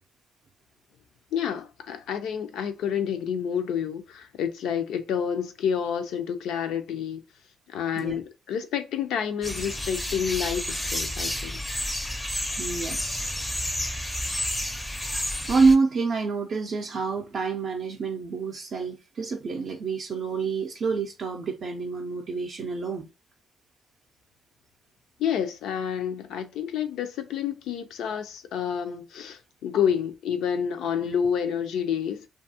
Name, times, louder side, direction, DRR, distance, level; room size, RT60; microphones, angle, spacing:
voice 1, 1.3-7.2 7.7-11.6 25.2-32.2, left 8 dB, 85° left, 0.4 m, -29 dB
sound 1, 9.4-15.8, left 1 dB, 10° left, 0.4 m, -30 dB
voice 2, 12.6-13.4 15.5-23.1 31.0-31.1, right 4 dB, 55° right, 0.4 m, -27 dB
2.6 x 2.3 x 2.7 m
cardioid pair, 90°, 0 cm